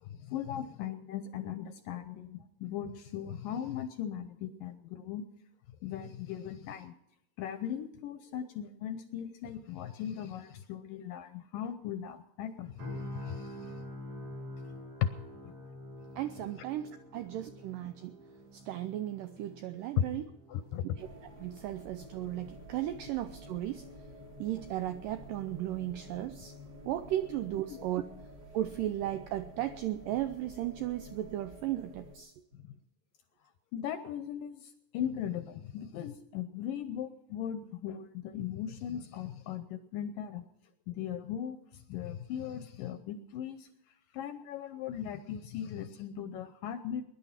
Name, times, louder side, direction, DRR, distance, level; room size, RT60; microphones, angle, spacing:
voice 1, 0.0-5.3 5.8-6.9 7.4-13.7 15.0-15.1 15.4-15.5 20.0-20.1 20.5-20.8 27.7-27.8 32.6-32.7 33.7-40.5 40.9-43.7 44.1-47.0, left 9 dB, 75° left, 11 dB, 2.1 m, -38 dB
sound 1, 12.8-26.8 27.1-27.4, left 1 dB, 55° right, 9.1 m, -48 dB
voice 2, 16.2-18.2 18.5-20.3 21.0-21.1 21.4-23.9 24.4-26.5 26.9-28.0 28.5-32.3, right 13 dB, 85° right, 10 dB, 1.9 m, -35 dB
sound 2, 21.0-32.2, equal, 30° right, 2.9 m, -51 dB
20.5 x 11.0 x 5.8 m, 0.78 s
omnidirectional pair, 4.6 m